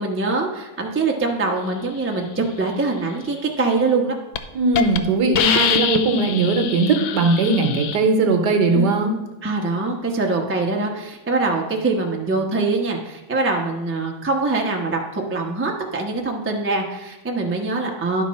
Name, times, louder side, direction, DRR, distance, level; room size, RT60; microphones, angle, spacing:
voice 1, 0.0-4.1 8.7-8.9 9.4-18.2, right 3 dB, 15° right, 0 dB, 0.4 m, -23 dB
Hiss, 3.8-4.0 4.4-4.5 4.8-5.0 5.4-8.0, left 8 dB, 80° left, 1.4 m, -23 dB
voice 2, 4.5-9.2, right 3 dB, 60° right, 4 dB, 1.4 m, -19 dB
11.0 x 5.6 x 4.2 m, 1.0 s
omnidirectional pair, 2.2 m